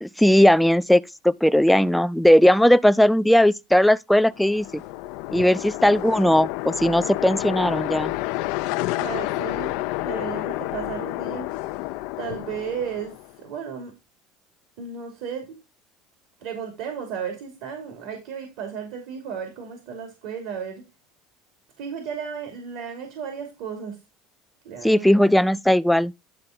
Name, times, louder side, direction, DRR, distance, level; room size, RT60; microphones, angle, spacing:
voice 1, 0.0-4.8 5.3-8.1 24.8-26.1, left 1 dB, 5° left, 0.5 m, -18 dB
sound 1, 4.3-13.4, left 18 dB, 70° left, 0.5 m, -30 dB
voice 2, 9.0-9.7 10.0-11.5 12.2-13.9 14.8-15.5 16.4-20.8 21.8-24.0 24.6-25.1, right 7 dB, 70° right, 2.7 m, -34 dB
10.5 x 4.3 x 3.9 m
hypercardioid pair, 85°, 0 cm